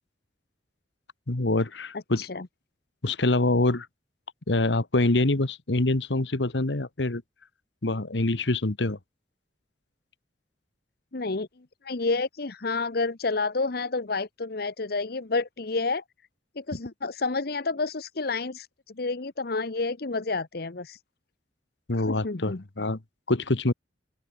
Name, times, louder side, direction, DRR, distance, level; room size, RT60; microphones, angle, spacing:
voice 1, 1.3-2.3 3.0-3.9 4.5-7.2 7.8-9.0 21.9-23.0 23.3-23.7, left 2 dB, 75° left, 1.4 m, -25 dB
voice 2, 11.1-11.5 11.8-16.0 16.6-21.0 22.1-22.6, left 3 dB, 55° left, 1.0 m, -29 dB
open air
head